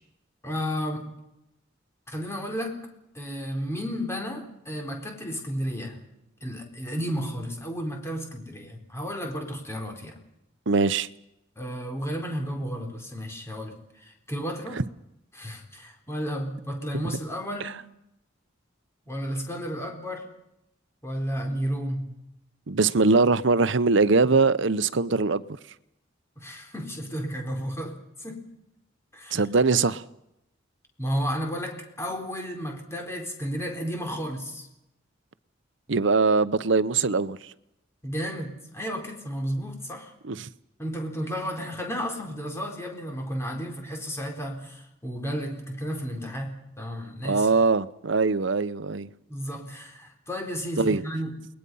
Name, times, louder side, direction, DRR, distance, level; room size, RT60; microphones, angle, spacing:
voice 1, 0.4-1.2 2.1-2.9 3.1-6.0 6.4-10.2 11.6-14.8 15.3-17.8 19.1-20.3 21.0-22.2 26.4-28.5 29.1-29.4 31.0-34.7 38.0-40.1 40.8-47.5 49.3-51.5, equal, 15° left, 4.2 m, -33 dB
voice 2, 10.7-11.1 14.8-14.9 22.7-25.4 29.3-30.0 35.9-37.4 40.2-40.5 47.2-49.1 50.8-51.0, right 4 dB, 65° right, 0.8 m, -22 dB
29.5 x 21.0 x 5.6 m
head